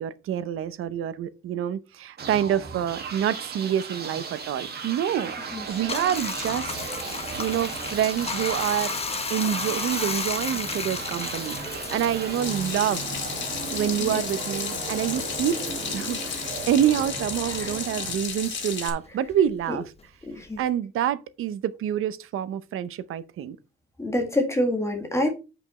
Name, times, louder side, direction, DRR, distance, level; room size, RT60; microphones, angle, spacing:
voice 1, 0.0-5.4 5.7-6.8 7.1-8.9 9.3-13.0 13.7-15.6 15.9-19.9 20.6-23.6, right 10 dB, 85° right, 0.7 m, -27 dB
sound 1, 2.2-18.9, right 5 dB, 50° right, 1.8 m, -36 dB
Bathtub (filling or washing), 5.7-18.5 18.8-20.7, left 4 dB, 30° left, 1.1 m, -34 dB
Water tap faucet / Sink (filling or washing), 12.4-18.9, left 6 dB, 60° left, 2.0 m, -33 dB
voice 2, 20.3-20.6 24.0-25.3, left 1 dB, 15° left, 1.7 m, -26 dB
8.4 x 5.2 x 4.2 m
cardioid pair, 135°, 21 cm